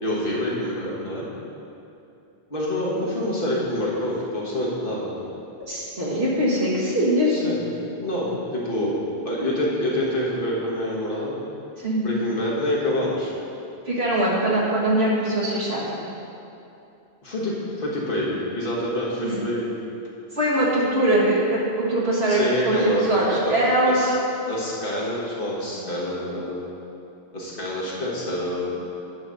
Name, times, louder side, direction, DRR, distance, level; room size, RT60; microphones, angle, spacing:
voice 1, 0.0-1.3 2.5-5.2 7.3-7.6 8.0-8.9 9.2-11.4 12.0-13.3 17.2-19.7 22.3-23.5 23.8-24.1 24.5-26.6 27.3-28.7, left 1 dB, 55° left, -5 dB, 1.6 m, -26 dB
voice 2, 5.7-7.3 11.8-12.1 13.9-16.0 19.2-19.4 20.3-24.2 25.7-26.0, right 1 dB, 75° right, -6 dB, 2.0 m, -22 dB
8.7 x 4.1 x 6.3 m, 2.7 s
omnidirectional pair, 1.1 m